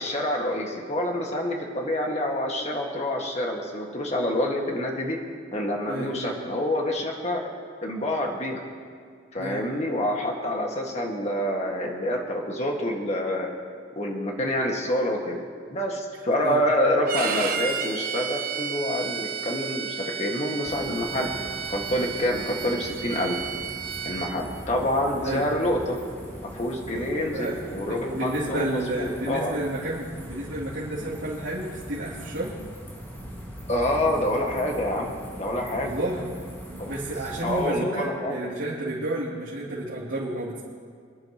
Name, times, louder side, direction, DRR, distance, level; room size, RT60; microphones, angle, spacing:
voice 1, 0.0-5.2 5.5-7.4 7.8-8.6 9.3-13.5 14.0-15.4 15.7-21.3 21.7-23.4 24.0-26.0 26.4-29.6 33.7-35.9 36.8-37.0 37.4-38.4, left 1 dB, 35° left, 0 dB, 1.7 m, -27 dB
voice 2, 5.9-6.3 9.4-9.8 16.4-16.6 25.2-25.4 26.9-32.5 35.8-36.3 36.7-40.6, right 1 dB, 85° right, -9 dB, 2.8 m, -31 dB
Bowed string instrument, 17.1-24.3, right 7 dB, 45° right, 0.9 m, -32 dB
sound 1, 20.6-37.7, equal, 10° left, 1.8 m, -41 dB
26.0 x 10.5 x 3.0 m, 2.1 s
head